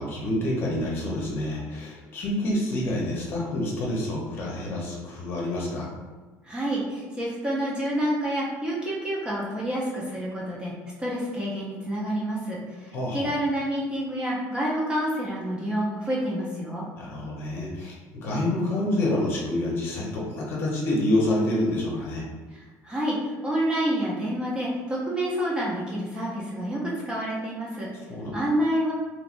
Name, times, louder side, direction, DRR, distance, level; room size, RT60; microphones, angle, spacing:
voice 1, 0.0-5.9 12.9-13.3 17.0-22.2 28.1-28.4, left 1 dB, 40° left, -3 dB, 0.7 m, -27 dB
voice 2, 6.5-10.7 11.0-16.9 22.5-23.2 23.4-27.9 28.3-28.9, right 1 dB, 15° right, -5 dB, 0.5 m, -28 dB
3.1 x 3.1 x 2.5 m, 1.3 s
cardioid pair, 175°, 6 cm